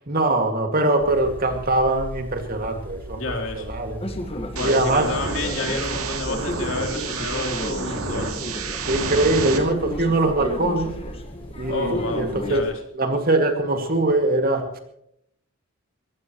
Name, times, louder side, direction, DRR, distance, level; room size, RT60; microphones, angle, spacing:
voice 1, 0.1-3.2 3.6-4.0 4.6-5.1 8.8-11.0 11.6-12.6 12.9-14.8, right 2 dB, 40° right, 5 dB, 2.2 m, -22 dB
sound 1, 1.0-12.6, right 1 dB, 10° left, 5.7 m, -39 dB
voice 2, 3.1-3.7 4.4-8.3 9.1-9.3 11.7-12.8, left 2 dB, 60° left, 3 dB, 3.4 m, -30 dB
sound 2, 4.0-12.6, left 1 dB, 25° left, 1.6 m, -33 dB
sound 3, 4.6-9.6, right 5 dB, 80° right, 2.5 m, -30 dB
23.0 x 16.5 x 3.1 m, 0.72 s
head